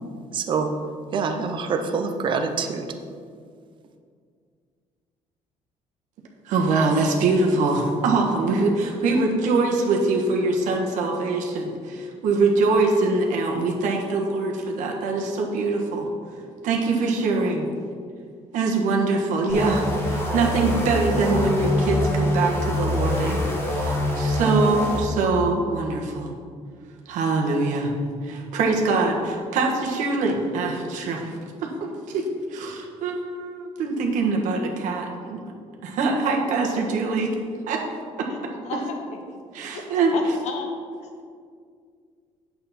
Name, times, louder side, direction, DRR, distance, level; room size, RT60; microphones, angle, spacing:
voice 1, 0.3-0.8 1.1-2.9, right 5 dB, 40° right, 6 dB, 0.7 m, -25 dB
voice 2, 6.4-16.1 16.6-17.7 18.5-23.4 23.7-26.3 27.0-27.9 28.2-31.3 31.6-35.5 35.8-37.3 37.7-37.8 38.2-38.3 39.5-40.1, right 3 dB, 90° right, 0 dB, 1.5 m, -23 dB
sound 1, 19.5-25.0, left 1 dB, 20° left, 1.3 m, -24 dB
voice 3, 38.6-39.0 39.7-39.9 40.1-40.7 41.0-41.3, left 3 dB, 60° left, 3 dB, 1.3 m, -33 dB
9.3 x 7.7 x 4.3 m, 2.1 s
cardioid pair, 180°, 13 cm